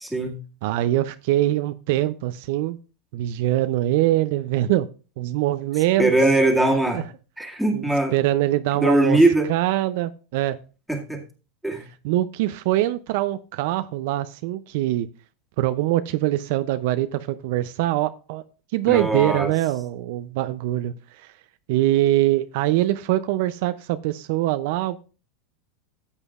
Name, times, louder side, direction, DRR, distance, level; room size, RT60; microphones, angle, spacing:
voice 1, 0.0-0.4 6.0-7.0 7.4-8.1 8.7-9.5 10.9-11.2 11.6-11.9 18.9-19.5, right 2 dB, ahead, -1 dB, 2.0 m, -20 dB
voice 2, 0.6-2.8 3.1-4.9 5.2-6.1 6.9-7.1 7.7-9.2 9.5-10.6 12.0-15.1 15.6-18.4 18.7-21.3 21.7-25.0, right 15 dB, 65° right, 11 dB, 0.5 m, -23 dB
14.0 x 8.1 x 2.4 m, 0.34 s
supercardioid pair, 120°, 0 cm